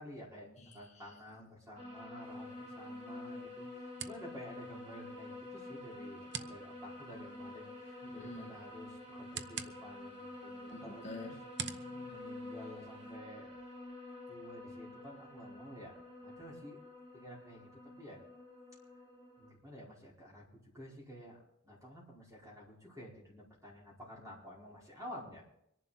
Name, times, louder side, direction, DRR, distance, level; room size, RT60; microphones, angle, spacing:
voice 1, 0.0-11.3 12.1-13.6 14.3-16.8 17.1-17.7 18.0-18.2 19.4-20.4 20.7-21.4 21.6-25.4, equal, 15° right, -3 dB, 4.8 m, -51 dB
voice 2, 0.6-1.1 8.0-8.5 10.7-12.2, left 2 dB, 30° left, 0 dB, 1.8 m, -49 dB
sound 1, 1.8-19.5, left 2 dB, 30° right, 5.6 m, -48 dB
sound 2, 2.2-13.2, right 8 dB, 55° right, 0.8 m, -50 dB
25.0 x 11.0 x 4.2 m, 0.77 s
head